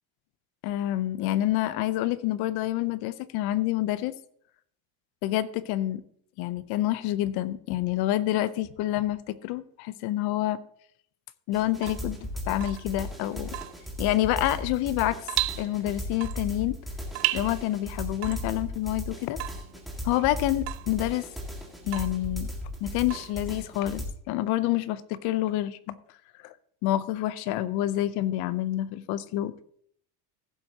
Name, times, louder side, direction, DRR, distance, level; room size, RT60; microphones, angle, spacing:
voice 1, 0.6-4.1 5.2-6.0 6.4-10.6 11.5-13.5 14.0-15.3 15.6-16.8 17.3-19.4 20.0-21.3 21.8-22.5 22.8-25.9 26.4-26.5 26.8-29.5, left 14 dB, 55° left, 15 dB, 0.8 m, -28 dB
sound 1, 11.5-24.1, equal, ahead, 1.9 m, -36 dB
Water tap faucet / Drip, 11.7-23.9, right 21 dB, 65° right, 0.6 m, -37 dB
15.5 x 7.8 x 2.9 m, 0.64 s
cardioid pair, 155°, 45 cm